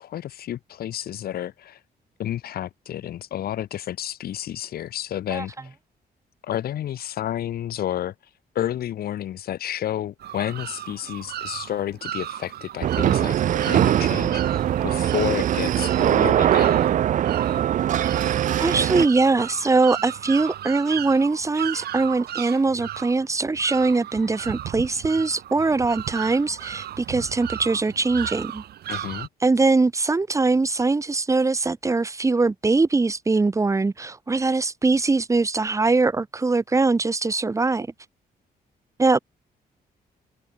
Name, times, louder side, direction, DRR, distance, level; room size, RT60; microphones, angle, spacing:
voice 1, 0.0-1.8 2.2-5.7 6.4-8.1 8.5-13.3 13.6-16.9 28.9-29.3, left 11 dB, 65° left, 1.6 m, -30 dB
sound 1, 10.2-29.3, right 12 dB, 75° right, 2.7 m, -36 dB
sound 2, 12.8-19.1, right 11 dB, 50° right, 0.5 m, -21 dB
voice 2, 18.6-28.6 28.9-29.0 29.4-37.9 39.0-39.2, right 3 dB, 20° right, 2.9 m, -22 dB
cardioid pair, 155°, 17 cm